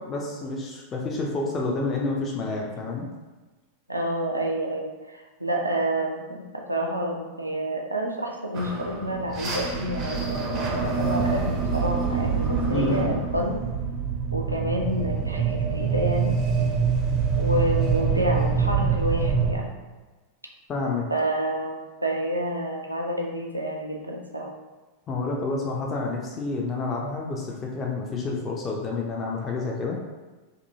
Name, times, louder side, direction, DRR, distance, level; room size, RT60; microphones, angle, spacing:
voice 1, 0.0-3.1 12.7-13.1 20.7-21.1 25.1-30.1, left 3 dB, 25° left, -1 dB, 0.4 m, -29 dB
voice 2, 3.9-13.6 14.3-16.3 17.3-19.7 21.1-24.5, equal, 85° right, 1 dB, 0.4 m, -29 dB
sound 1, 8.5-19.5, right 5 dB, 30° right, 0.5 m, -25 dB
2.6 x 2.6 x 2.7 m, 1.2 s
figure-of-eight pair, 90°, 0 cm